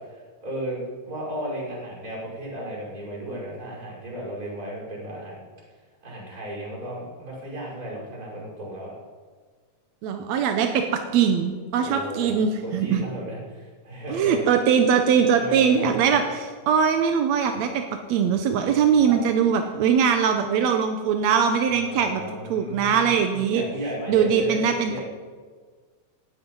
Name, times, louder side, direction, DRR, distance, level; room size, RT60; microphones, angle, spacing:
voice 1, 0.0-5.5 6.0-8.9 11.8-14.4 15.3-16.2 19.0-19.2 21.7-25.0, right 1 dB, 20° right, -5 dB, 6.1 m, -34 dB
voice 2, 10.0-13.0 14.1-17.8 18.1-22.2 22.5-23.6 24.1-25.0, right 7 dB, 75° right, 5 dB, 1.6 m, -21 dB
17.5 x 12.0 x 5.5 m, 1.5 s
omnidirectional pair, 4.3 m